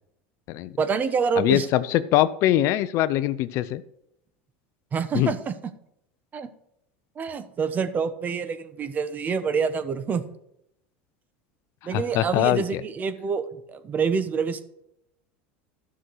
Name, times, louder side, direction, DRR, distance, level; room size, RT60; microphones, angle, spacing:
voice 1, 0.8-1.7 4.9-5.5 6.3-6.5 7.2-10.2 11.8-14.6, right 6 dB, 30° right, 11 dB, 1.0 m, -27 dB
voice 2, 1.4-3.8 5.1-5.3 11.9-12.8, left 14 dB, 55° left, 15 dB, 0.6 m, -22 dB
12.5 x 6.2 x 4.7 m, 0.77 s
supercardioid pair, 125°, 6 cm